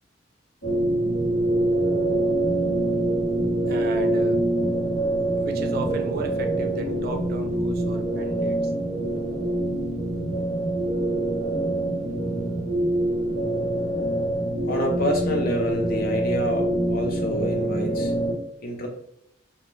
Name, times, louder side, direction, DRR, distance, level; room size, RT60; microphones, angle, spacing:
sound 1, 0.6-18.3, right 1 dB, 85° left, 1.0 m, -25 dB
voice 1, 3.7-4.4 5.4-8.7, right 2 dB, 50° right, 6 dB, 0.3 m, -34 dB
voice 2, 14.6-18.1 18.6-18.9, left 1 dB, 50° left, 3 dB, 0.5 m, -27 dB
2.3 x 2.1 x 3.0 m, 0.76 s
head